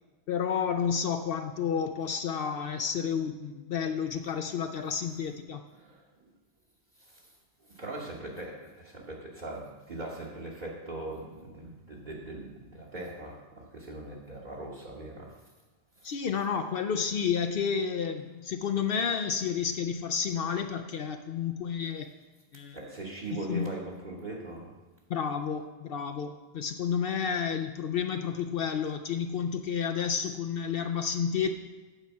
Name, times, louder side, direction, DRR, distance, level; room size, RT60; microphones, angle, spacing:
voice 1, 0.3-5.6 16.0-22.1 22.5-22.8 23.3-23.7 25.1-31.5, left 7 dB, 65° left, 7 dB, 0.7 m, -31 dB
voice 2, 5.7-6.3 7.0-7.3 7.6-15.4 16.0-16.1 22.7-24.8, right 2 dB, 45° right, -3 dB, 1.3 m, -41 dB
9.0 x 4.7 x 7.1 m, 1.2 s
omnidirectional pair, 1.1 m